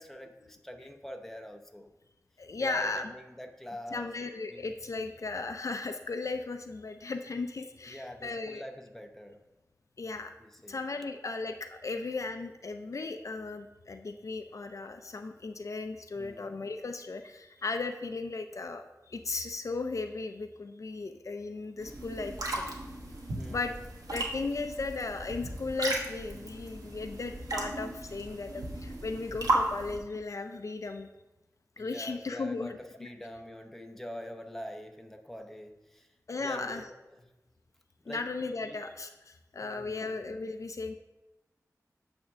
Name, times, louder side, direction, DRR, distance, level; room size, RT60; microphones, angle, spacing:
voice 1, 0.0-1.9 2.6-4.1 4.5-4.7 7.8-9.4 10.4-10.8 16.2-16.6 23.4-23.7 31.8-36.1 36.4-37.3 38.0-38.2 38.6-38.8 39.6-40.1, equal, 5° left, 5 dB, 0.7 m, -45 dB
voice 2, 2.4-3.1 3.9-8.6 10.0-10.3 10.7-22.7 23.5-23.7 24.1-31.1 31.8-33.1 36.3-36.9 38.1-40.9, left 3 dB, 60° left, 7 dB, 0.4 m, -36 dB
sound 1, 21.8-30.0, right 2 dB, 80° right, 1.3 m, -35 dB
8.8 x 3.5 x 6.1 m, 1.0 s
wide cardioid pair, 80°, 6 cm